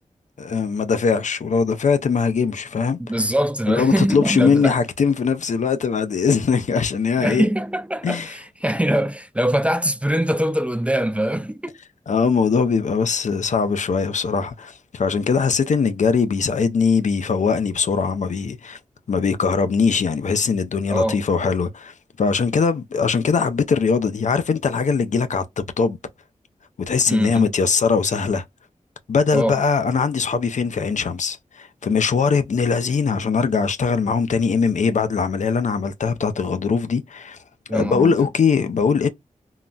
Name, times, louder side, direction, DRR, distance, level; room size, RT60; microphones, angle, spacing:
voice 1, 0.4-3.2 3.7-7.5 8.0-8.3 12.1-18.8 19.1-26.0 26.9-28.4 29.1-37.4 37.7-39.1, left 5 dB, 65° left, 0.4 m, -21 dB
voice 2, 3.1-4.7 7.2-11.8 20.9-21.2 27.1-27.5 29.3-29.6 37.7-38.2, right 1 dB, 10° right, 0.3 m, -22 dB
3.8 x 2.0 x 2.2 m
cardioid pair, 55°, 13 cm